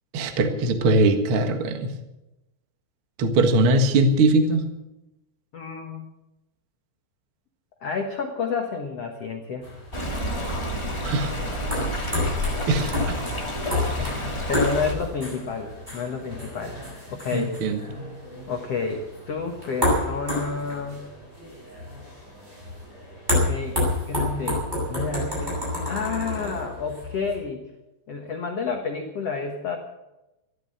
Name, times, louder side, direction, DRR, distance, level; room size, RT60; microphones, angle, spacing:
voice 1, 0.1-1.9 3.2-4.7 11.0-11.3 12.7-13.2 14.0-14.1 17.3-17.8, right 2 dB, 85° right, 6 dB, 1.2 m, -21 dB
voice 2, 5.5-6.1 7.8-9.7 14.5-16.8 17.1-17.5 18.5-21.1 23.3-23.8 24.1-24.6 24.9-27.6 28.1-29.8, left 5 dB, 75° left, 2 dB, 1.4 m, -30 dB
sound 1, 9.6-27.4, left 1 dB, 10° right, 7.7 m, -30 dB
Stream, 9.9-14.9, equal, 25° left, 0.6 m, -29 dB
14.5 x 13.0 x 7.7 m, 0.96 s
omnidirectional pair, 5.3 m